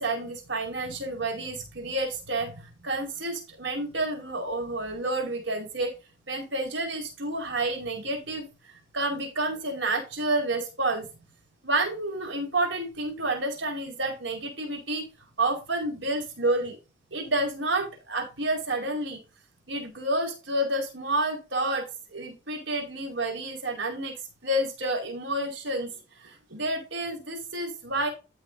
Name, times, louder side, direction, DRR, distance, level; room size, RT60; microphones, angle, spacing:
voice 1, 0.0-5.9 6.3-8.5 8.9-11.1 11.6-15.0 15.4-16.8 17.1-19.2 19.7-21.9 22.1-24.1 24.4-25.9 26.2-28.1, right 2 dB, 70° right, 3 dB, 5.0 m, -29 dB
13.5 x 6.7 x 2.8 m, 0.30 s
head